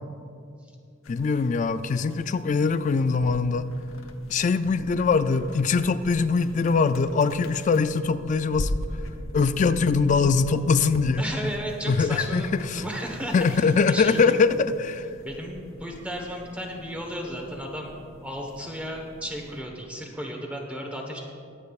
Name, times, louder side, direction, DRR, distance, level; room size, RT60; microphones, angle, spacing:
sound 1, 1.0-19.6, left 1 dB, 80° left, 0.9 m, -41 dB
voice 1, 1.1-3.7 4.3-8.7 9.3-11.2 11.9-12.4 12.7-12.8 13.3-15.1, left 4 dB, 35° left, 12 dB, 0.3 m, -22 dB
voice 2, 11.2-14.3 15.2-21.2, equal, 5° right, 1 dB, 1.2 m, -34 dB
22.0 x 8.6 x 2.4 m, 2.5 s
head